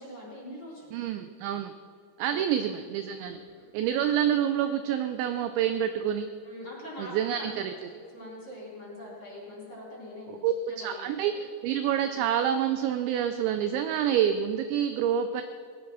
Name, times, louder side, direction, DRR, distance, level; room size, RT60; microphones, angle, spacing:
voice 1, 0.0-1.0 2.2-2.4 3.2-3.7 6.4-10.4 10.7-11.1 11.3-11.4, left 1 dB, 25° left, -5 dB, 3.8 m, -43 dB
voice 2, 0.9-1.7 2.2-3.4 3.7-6.3 7.0-7.7 10.3-15.4, right 9 dB, 85° right, 9 dB, 2.6 m, -27 dB
19.0 x 12.0 x 6.2 m, 2.2 s
omnidirectional pair, 6.0 m